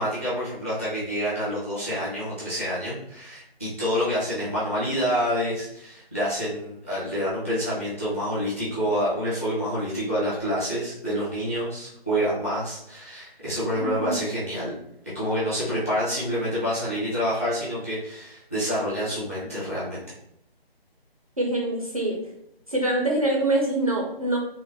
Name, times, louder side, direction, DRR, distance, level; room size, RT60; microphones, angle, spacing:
voice 1, 0.0-14.7 15.1-20.0, equal, 15° left, -9 dB, 0.6 m, -27 dB
voice 2, 13.8-14.2 21.4-22.2 22.7-24.4, right 1 dB, 35° right, -1 dB, 0.4 m, -24 dB
3.6 x 2.0 x 3.0 m, 0.74 s
figure-of-eight pair, 155°, 31 cm